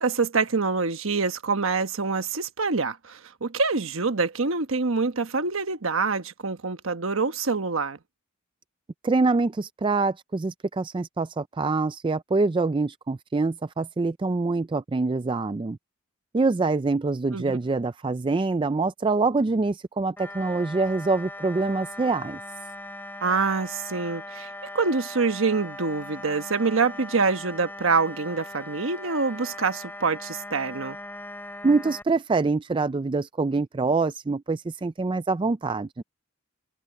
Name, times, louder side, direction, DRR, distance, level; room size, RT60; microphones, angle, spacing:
voice 1, 0.0-8.0 17.3-17.6 23.2-31.0, right 4 dB, 65° right, 1.2 m, -26 dB
voice 2, 9.0-15.8 16.3-22.4 31.6-36.0, right 3 dB, 25° right, 0.3 m, -25 dB
sound 1, 20.2-32.0, left 1 dB, 10° left, 3.6 m, -40 dB
head